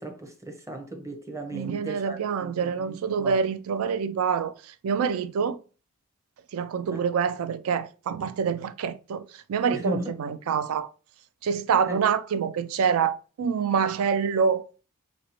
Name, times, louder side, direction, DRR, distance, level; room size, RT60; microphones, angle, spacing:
voice 1, 0.0-3.4 6.9-7.0 9.7-10.1 11.8-12.0, right 1 dB, 15° right, 0.7 m, -36 dB
voice 2, 1.5-5.6 6.5-10.9 11.4-14.8, right 6 dB, 70° right, 0.3 m, -26 dB
4.1 x 2.7 x 2.9 m
head